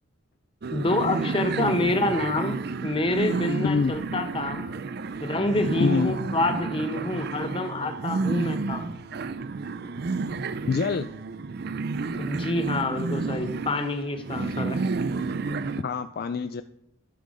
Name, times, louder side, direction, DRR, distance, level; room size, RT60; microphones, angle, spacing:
sound 1, 0.6-15.8, right 4 dB, 50° right, 0.4 m, -31 dB
voice 1, 0.7-4.7 5.2-8.9 12.1-14.8, left 2 dB, 25° left, 7 dB, 0.8 m, -27 dB
voice 2, 3.6-3.9 5.8-6.2 10.7-11.1 15.8-16.6, left 5 dB, 45° left, 10 dB, 0.3 m, -25 dB
12.0 x 5.7 x 5.0 m, 0.77 s
head